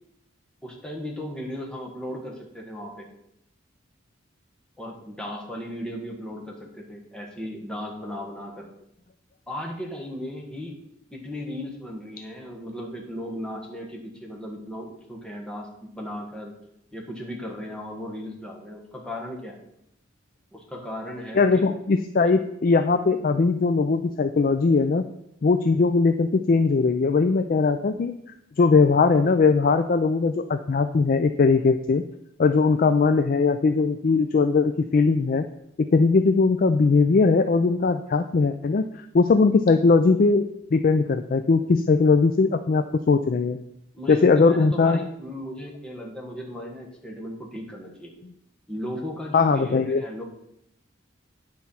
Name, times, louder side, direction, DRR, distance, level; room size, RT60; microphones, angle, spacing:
voice 1, 0.6-3.1 4.8-8.7 9.5-10.8 11.1-16.5 16.9-19.6 20.5-21.6 22.2-22.3 43.9-48.1 48.7-50.2, left 1 dB, 5° left, -2 dB, 1.5 m, -36 dB
voice 2, 21.3-25.0 25.4-28.1 28.6-32.0 32.4-35.4 35.9-43.6 44.1-45.0 49.3-50.0, left 4 dB, 45° left, 8 dB, 0.4 m, -20 dB
9.5 x 4.5 x 5.6 m, 0.78 s
head